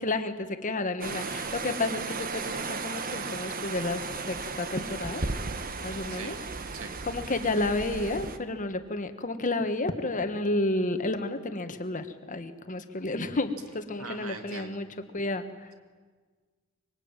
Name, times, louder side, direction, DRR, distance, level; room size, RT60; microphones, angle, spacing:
voice 1, 0.0-4.0 4.3-5.2 5.8-6.4 7.0-14.9 15.1-15.7, left 2 dB, 40° left, 8 dB, 1.6 m, -31 dB
sound 1, 1.0-8.4, right 4 dB, 45° right, 1.3 m, -35 dB
voice 2, 6.1-6.5 6.7-7.1 14.0-14.8, right 4 dB, 80° right, 7 dB, 2.2 m, -42 dB
24.5 x 22.5 x 9.0 m, 1.5 s
head